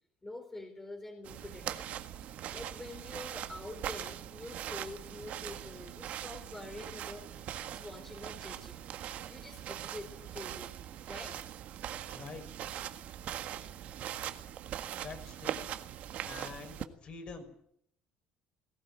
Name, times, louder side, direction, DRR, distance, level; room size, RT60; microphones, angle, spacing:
voice 1, 0.2-1.9 2.2-7.3 7.5-10.8 11.0-11.4 13.6-13.7, left 2 dB, 10° left, 4 dB, 4.0 m, -46 dB
sound 1, 1.2-16.8, right 11 dB, 60° right, 1.7 m, -41 dB
voice 2, 12.1-12.5 15.0-15.6 16.2-17.6, left 4 dB, 40° left, 4 dB, 6.0 m, -46 dB
19.0 x 17.5 x 9.4 m, 0.70 s
cardioid pair, 130°, 3 cm